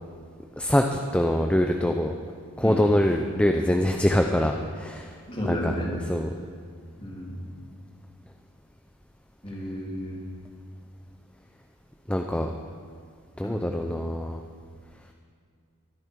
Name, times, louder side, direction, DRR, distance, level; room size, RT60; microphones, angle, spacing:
voice 1, 0.6-2.1 2.6-5.1 5.5-5.7 6.1-6.3 12.1-12.5 13.4-14.4, left 1 dB, 5° left, 3 dB, 0.5 m, -24 dB
voice 2, 5.3-5.9 7.0-7.5 9.4-10.2 13.4-13.6, equal, 25° left, -3 dB, 3.1 m, -32 dB
23.0 x 10.5 x 4.7 m, 2.2 s
head